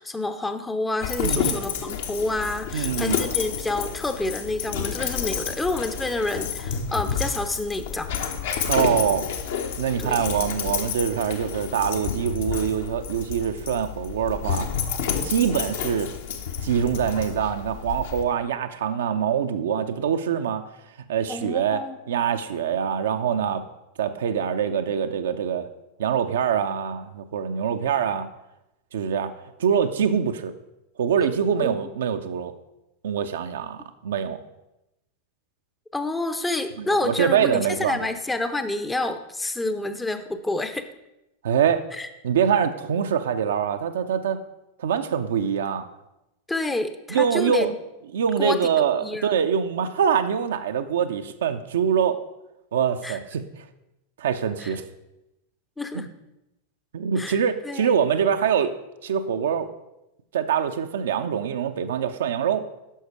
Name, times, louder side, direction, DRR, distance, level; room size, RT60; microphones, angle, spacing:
voice 1, 0.0-8.1 10.0-10.2 21.3-22.0 31.6-31.8 35.9-40.9 41.9-42.1 46.5-47.8 48.4-48.6 49.0-49.3 53.0-53.2 54.6-54.8 55.8-56.1 57.2-57.4 57.6-58.0, left 2 dB, 10° left, 10 dB, 0.6 m, -28 dB
Dog, 1.0-18.2, left 7 dB, 55° left, 0.9 m, -30 dB
voice 2, 1.2-1.6 2.7-3.2 8.6-9.2 9.8-14.7 15.2-16.1 16.6-20.6 21.1-23.6 24.0-25.7 26.0-28.3 28.9-29.3 29.6-30.5 31.0-32.5 33.0-34.4 36.8-38.0 41.4-41.8 42.2-44.4 44.8-45.9 47.1-47.7 48.1-52.2 52.7-53.4 54.2-54.8 55.9-56.1 56.9-58.7 59.0-59.7 60.3-62.7, right 8 dB, 60° right, 8 dB, 0.6 m, -24 dB
10.0 x 6.3 x 4.7 m, 0.91 s
figure-of-eight pair, 90°, 0 cm